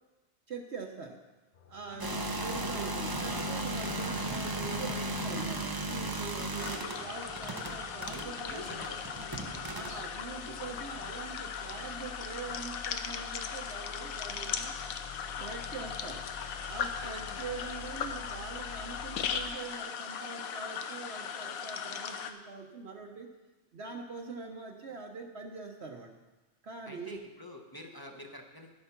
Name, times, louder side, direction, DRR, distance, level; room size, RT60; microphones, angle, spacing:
voice 1, 0.5-1.2 1.7-8.8 9.7-14.7 15.4-16.3 16.7-23.3 23.7-26.2 26.6-27.2, right 4 dB, 55° right, 2 dB, 1.0 m, -43 dB
sound 1, 1.5-19.5, left 6 dB, 45° left, 0.6 m, -50 dB
voice 2, 1.9-2.4 6.6-7.1 7.4-9.6 10.4-11.1 17.0-17.5 26.8-28.7, left 1 dB, 20° left, 2 dB, 0.9 m, -49 dB
sound 2, 2.0-10.1, right 1 dB, 25° right, 0.5 m, -36 dB
sound 3, 6.6-22.3, left 7 dB, 90° left, 1.2 m, -38 dB
11.5 x 8.1 x 5.8 m, 1.1 s
omnidirectional pair, 1.4 m